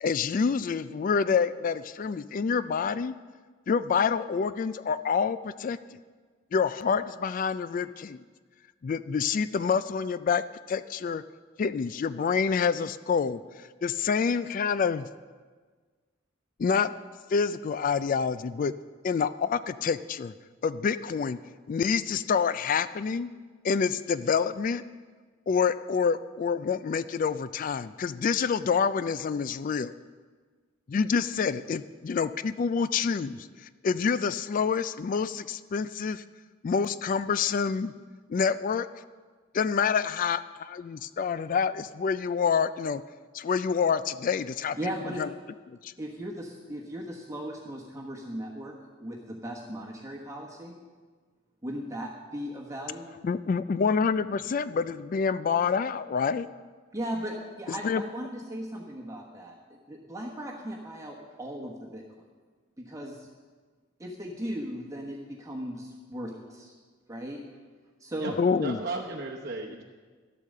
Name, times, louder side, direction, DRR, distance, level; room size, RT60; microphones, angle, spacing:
voice 1, 0.0-3.2 3.7-5.8 6.5-8.2 8.8-11.2 11.6-13.4 13.8-15.1 16.6-16.9 17.3-18.7 19.0-20.3 20.6-21.4 21.7-23.3 23.6-24.8 25.5-29.9 30.9-33.4 33.8-36.2 36.6-37.9 38.3-38.9 39.5-43.0 43.3-44.8 45.2-45.3 45.7-45.9 53.2-56.5 57.8-58.0 68.4-68.8, left 6 dB, 45° left, 14 dB, 0.3 m, -27 dB
voice 2, 44.8-45.2 46.0-48.7 49.0-50.7 51.6-53.0 56.9-62.0 62.8-63.3 64.0-66.7 67.1-67.4 68.0-68.4, equal, 15° right, -2 dB, 1.1 m, -37 dB
voice 3, 68.6-69.8, right 3 dB, 50° right, -2 dB, 0.9 m, -35 dB
12.0 x 8.5 x 6.6 m, 1.5 s
head